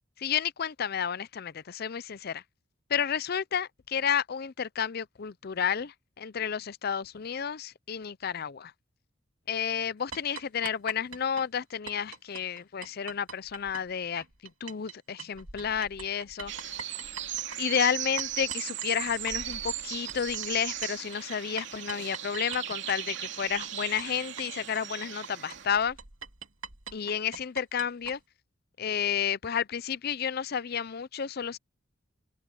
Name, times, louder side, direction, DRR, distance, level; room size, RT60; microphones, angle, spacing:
voice 1, 0.2-2.4 2.9-8.7 9.5-14.2 14.6-16.7 17.6-26.0 26.9-28.2 28.8-31.6, left 7 dB, 50° left, 0.5 m, -31 dB
sound 1, 10.1-14.9 15.2-28.2, right 5 dB, 90° right, 2.6 m, -44 dB
sound 2, 16.5-25.7, right 11 dB, 60° right, 2.9 m, -37 dB
open air
head